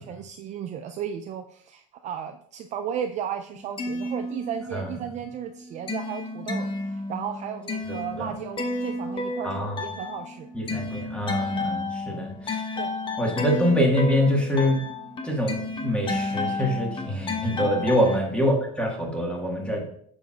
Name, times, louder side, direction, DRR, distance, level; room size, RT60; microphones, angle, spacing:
voice 1, 0.0-10.5 12.8-12.9 13.5-13.6 18.0-18.2, right 8 dB, 35° right, 6 dB, 0.4 m, -35 dB
sound 1, 3.5-5.0 5.3-18.2, left 2 dB, 25° left, 0.9 m, -32 dB
voice 2, 7.9-8.3 9.4-9.8 10.5-12.6 13.2-14.8 15.2-19.8, equal, 5° left, 0 dB, 1.5 m, -25 dB
6.7 x 6.0 x 2.4 m, 0.64 s
supercardioid pair, 115°, 20 cm